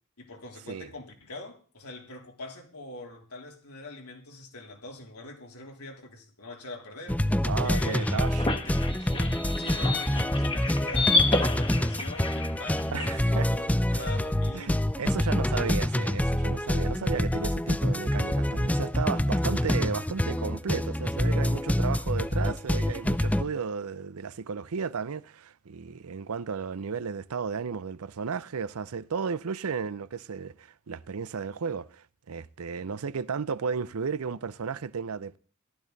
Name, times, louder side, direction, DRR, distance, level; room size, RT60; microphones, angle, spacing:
voice 1, 0.2-7.2 7.6-8.8 9.6-14.9, left 2 dB, 90° left, 3.4 m, -43 dB
sound 1, 7.1-23.4, left 1 dB, 5° left, 0.5 m, -26 dB
voice 2, 7.5-8.6 9.1-9.4 12.9-13.5 13.9-14.1 14.5-35.4, right 5 dB, 75° right, 0.6 m, -34 dB
sound 2, 7.7-13.2, left 3 dB, 25° left, 1.4 m, -30 dB
15.0 x 12.5 x 4.0 m
head